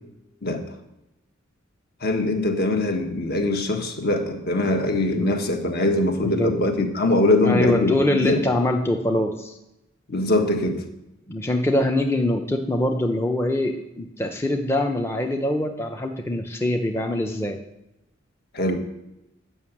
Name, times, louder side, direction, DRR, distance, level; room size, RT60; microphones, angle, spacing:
voice 1, 2.0-8.4 10.1-10.8 18.5-18.8, left 2 dB, 50° left, 5 dB, 1.4 m, -22 dB
voice 2, 6.2-6.5 7.4-9.5 11.3-17.6, left 1 dB, 15° left, 3 dB, 0.6 m, -23 dB
9.6 x 5.9 x 7.3 m, 0.91 s
head